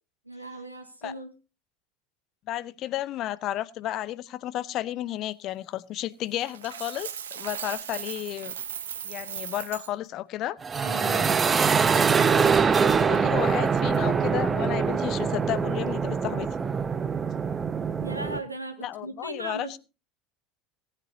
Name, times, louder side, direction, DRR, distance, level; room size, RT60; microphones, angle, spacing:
voice 1, 0.3-1.3 10.8-11.4 18.0-19.8, right 2 dB, 90° right, 1.9 m, -38 dB
voice 2, 2.5-8.5 9.0-10.6 11.9-12.2 12.9-16.5 18.8-19.8, left 13 dB, 45° left, 0.7 m, -32 dB
Coin (dropping), 6.4-9.9, right 9 dB, 70° right, 1.0 m, -37 dB
sound 1, 10.6-18.4, right 6 dB, 25° right, 0.8 m, -24 dB
19.0 x 10.0 x 2.8 m
figure-of-eight pair, 70°, 0 cm